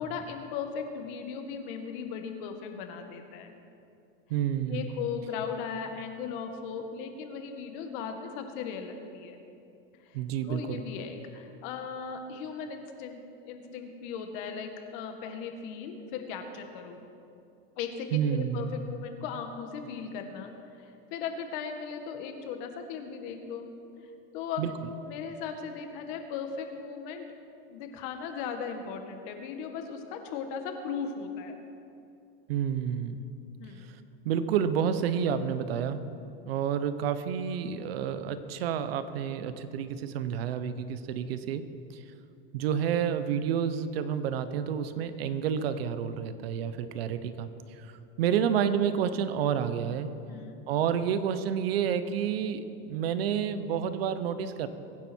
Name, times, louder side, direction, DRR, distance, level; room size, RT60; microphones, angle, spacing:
voice 1, 0.0-3.6 4.7-9.4 10.0-17.0 17.8-20.5 20.8-23.7 24.3-27.3 27.7-31.6 33.6-33.9 50.3-50.6, left 6 dB, 60° left, 5 dB, 1.9 m, -37 dB
voice 2, 4.3-4.9 10.1-10.8 18.1-18.7 24.6-24.7 32.5-33.2 34.2-36.0 36.4-41.6 41.9-42.0 42.5-47.5 47.8-47.9 48.2-50.2 50.7-54.7, right 8 dB, 90° right, 11 dB, 1.1 m, -29 dB
23.0 x 9.9 x 4.6 m, 2.7 s
supercardioid pair, 150°, 29 cm